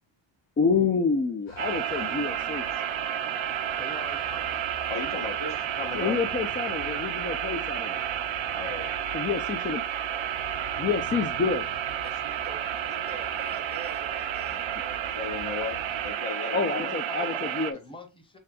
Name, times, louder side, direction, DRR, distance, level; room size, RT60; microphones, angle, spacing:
voice 1, 0.6-2.7 5.9-8.0 9.1-9.8 10.8-11.7 16.5-17.8, left 5 dB, 25° left, 0.3 m, -28 dB
sound 1, 1.5-16.1, left 3 dB, 90° left, 1.4 m, -46 dB
sound 2, 1.6-17.7, right 10 dB, 80° right, 0.7 m, -31 dB
voice 2, 3.7-4.7 17.1-18.4, left 1 dB, 10° left, 0.8 m, -44 dB
voice 3, 4.9-6.2 8.5-8.9 10.1-10.3 14.5-14.7 15.1-16.9, left 5 dB, 70° left, 1.4 m, -36 dB
voice 4, 12.0-15.0, right 4 dB, 20° right, 0.7 m, -45 dB
6.4 x 3.3 x 2.2 m
wide cardioid pair, 145°, 46 cm